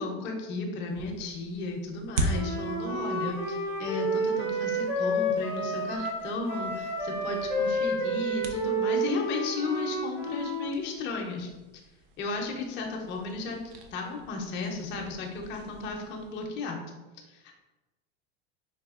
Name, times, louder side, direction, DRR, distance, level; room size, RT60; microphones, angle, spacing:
voice 1, 0.0-11.5 12.2-13.6 13.9-16.8 17.3-17.4, left 3 dB, 35° left, 1 dB, 0.5 m, -34 dB
sound 1, 0.9-16.5, right 1 dB, 75° right, 0.6 m, -41 dB
Wind instrument woodwind instrument, 2.3-10.7, right 1 dB, 5° right, 0.5 m, -30 dB
4.0 x 2.3 x 2.4 m, 1.1 s
supercardioid pair, 140°, 32 cm